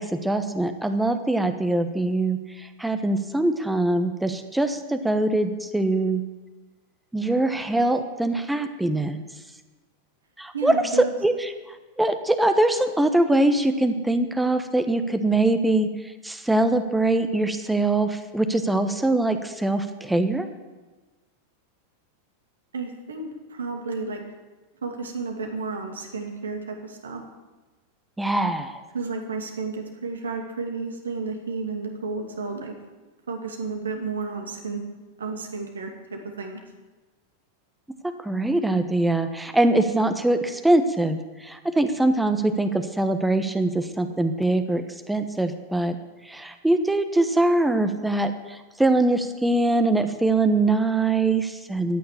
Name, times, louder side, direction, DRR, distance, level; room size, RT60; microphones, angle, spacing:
voice 1, 0.0-6.2 7.1-9.2 10.4-10.7 11.2-11.5 12.0-15.9 16.2-20.5 28.2-28.8 38.2-46.0 46.3-52.0, right 2 dB, 5° right, 8 dB, 1.1 m, -23 dB
voice 2, 10.5-11.1 22.7-24.2 24.8-27.2 28.9-32.7 33.3-34.8 35.2-36.6, right 4 dB, 70° right, 3 dB, 2.4 m, -32 dB
13.5 x 9.2 x 8.5 m, 1.2 s
figure-of-eight pair, 90°, 0 cm